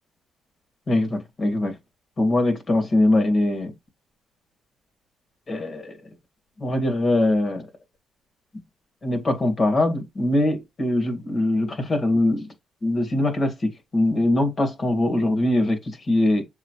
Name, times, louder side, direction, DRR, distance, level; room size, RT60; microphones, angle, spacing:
voice 1, 0.9-1.7 2.2-3.7 5.5-6.0 6.6-7.7 9.0-12.5 12.8-16.4, left 1 dB, 40° left, 2.0 m, -22 dB
7.2 x 4.2 x 3.2 m
cardioid pair, 90°, 0 cm